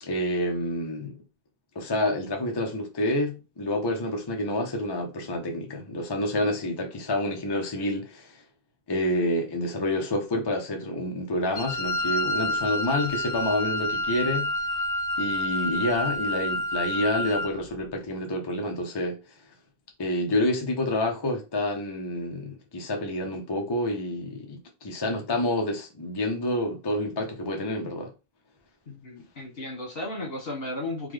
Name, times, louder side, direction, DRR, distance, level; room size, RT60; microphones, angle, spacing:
voice 1, 0.0-1.2 1.7-8.4 8.9-14.5 15.2-19.4 20.0-28.1, left 1 dB, 30° left, 0.6 m, -28 dB
Wind instrument woodwind instrument, 11.5-17.6, left 1 dB, 85° left, 0.9 m, -28 dB
voice 2, 28.9-31.1, left 1 dB, 65° left, 1.6 m, -35 dB
3.8 x 2.2 x 3.2 m
omnidirectional pair, 1.1 m